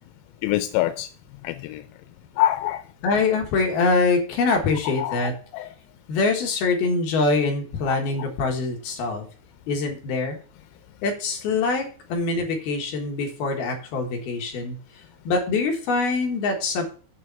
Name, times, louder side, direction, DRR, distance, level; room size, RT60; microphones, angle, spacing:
voice 1, 0.4-1.1 1.4-1.8 2.4-2.8 5.0-5.7 7.9-8.0, left 14 dB, 90° left, 3.3 m, -25 dB
voice 2, 3.0-5.4 6.1-9.2 9.7-10.4 11.0-14.8 15.2-16.8, left 3 dB, 65° left, 2.7 m, -24 dB
7.8 x 6.7 x 5.7 m
omnidirectional pair, 5.9 m